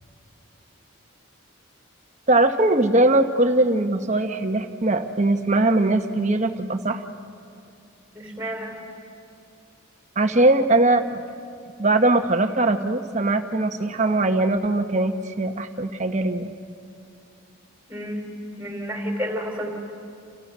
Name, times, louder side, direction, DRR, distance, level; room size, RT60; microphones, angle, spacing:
voice 1, 2.3-7.1 10.2-11.2 11.8-16.5, right 2 dB, 35° right, 6 dB, 1.1 m, -21 dB
voice 2, 8.1-8.8 17.9-18.2 18.6-19.7, equal, 5° right, 1 dB, 4.0 m, -30 dB
29.5 x 29.0 x 6.2 m, 2.5 s
head